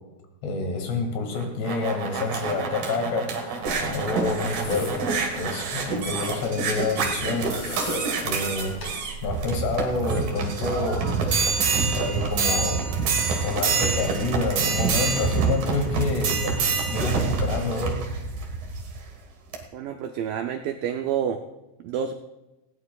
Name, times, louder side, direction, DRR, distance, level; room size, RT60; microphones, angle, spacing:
voice 1, 0.4-3.5 3.8-5.1 5.4-7.8 8.2-8.8 9.2-11.1 12.0-12.8 13.4-18.0, left 3 dB, 80° left, 3 dB, 4.2 m, -28 dB
sound 1, 1.3-19.0 19.5-19.6, right 5 dB, 60° right, 3.0 m, -26 dB
sound 2, 3.7-9.0, left 1 dB, 45° left, 5.8 m, -38 dB
voice 2, 19.7-21.4 21.8-22.1, right 8 dB, 90° right, 6 dB, 1.9 m, -28 dB
19.0 x 17.0 x 2.4 m, 1.0 s
omnidirectional pair, 4.8 m